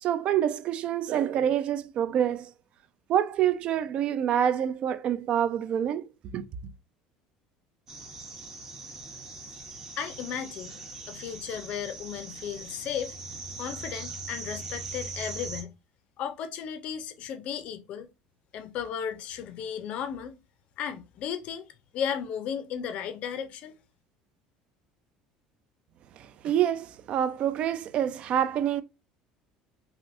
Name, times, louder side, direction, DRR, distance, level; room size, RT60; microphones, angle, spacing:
voice 1, 0.0-2.5 3.1-6.0 6.3-6.7 26.2-28.8, right 10 dB, 45° right, 0.3 m, -27 dB
sound 1, 7.9-15.6, right 3 dB, 20° right, 0.8 m, -41 dB
voice 2, 10.0-10.8 11.1-13.1 13.6-15.7 16.2-18.1 18.5-20.4 20.8-21.6 21.9-23.8, left 8 dB, 50° left, 0.4 m, -35 dB
3.3 x 2.5 x 2.5 m
cardioid pair, 130°, 3 cm